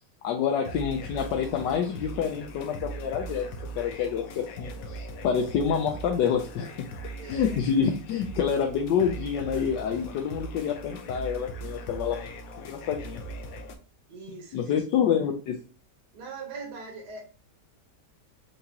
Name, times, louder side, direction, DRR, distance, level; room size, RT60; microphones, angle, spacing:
voice 1, 0.2-3.4 3.8-6.7 7.3-12.3 12.6-13.2 14.5-15.6, left 7 dB, 85° left, 1 dB, 1.3 m, -27 dB
sound 1, 0.6-13.8, right 1 dB, 65° left, 1.0 m, -40 dB
voice 2, 7.2-7.6 14.1-14.6 16.1-17.2, right 4 dB, 70° right, 0 dB, 1.7 m, -41 dB
4.8 x 2.9 x 2.7 m, 0.36 s
omnidirectional pair, 1.9 m